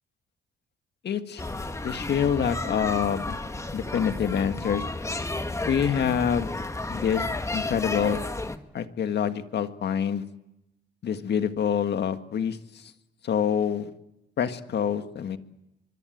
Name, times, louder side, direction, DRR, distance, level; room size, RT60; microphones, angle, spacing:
voice 1, 1.0-1.4 1.8-3.4 3.7-4.8 5.7-6.5 6.9-7.3 7.5-8.2 8.7-10.2 11.0-12.9 13.2-13.9 14.4-15.4, left 8 dB, 60° left, 9 dB, 1.8 m, -26 dB
sound 1, 1.4-8.6, left 2 dB, 15° left, 1.7 m, -32 dB
24.0 x 23.0 x 9.3 m, 0.89 s
cardioid pair, 90°, 20 cm